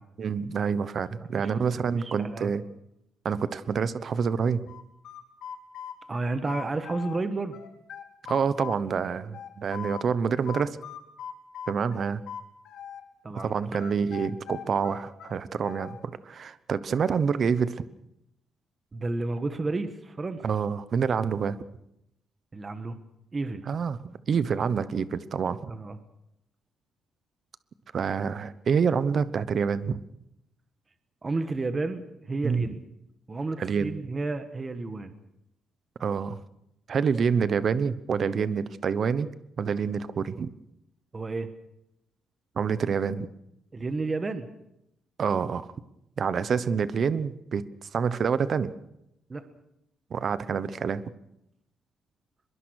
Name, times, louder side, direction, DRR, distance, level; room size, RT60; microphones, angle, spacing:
voice 1, 0.2-2.6 3.2-4.6 8.3-10.8 11.7-12.2 13.4-17.8 20.4-21.6 23.7-24.0 24.3-25.7 27.9-30.0 32.4-32.7 33.6-33.9 36.0-36.4 36.9-39.3 39.6-40.5 42.6-43.3 45.2-45.7 46.2-48.7 50.1-51.0, right 6 dB, 35° right, 15 dB, 0.9 m, -27 dB
voice 2, 1.2-2.5 6.1-7.6 11.9-12.1 13.2-13.8 18.9-20.4 22.5-23.0 23.3-23.6 25.7-26.0 31.2-32.8 33.3-35.1 41.1-41.5 43.7-44.5 49.3-49.4, right 3 dB, 20° right, 10 dB, 1.3 m, -32 dB
sound 1, 4.7-7.2 7.5-10.1 10.5-13.0 13.4-16.0, left 8 dB, 65° left, 2.7 m, -40 dB
23.5 x 22.0 x 6.4 m, 0.82 s
cardioid pair, 180°, 0 cm